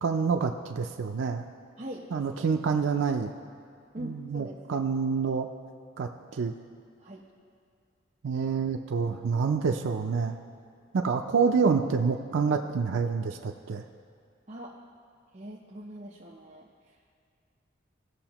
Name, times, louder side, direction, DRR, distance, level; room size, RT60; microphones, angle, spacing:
voice 1, 0.0-1.5 2.1-3.3 4.0-5.5 6.0-6.5 8.2-10.4 10.9-13.8, right 5 dB, 90° right, 3 dB, 0.4 m, -27 dB
voice 2, 1.8-2.5 3.9-4.6 7.0-7.3 14.5-14.7 15.3-16.7, equal, 35° right, -5 dB, 0.8 m, -42 dB
17.5 x 6.3 x 3.0 m, 2.3 s
head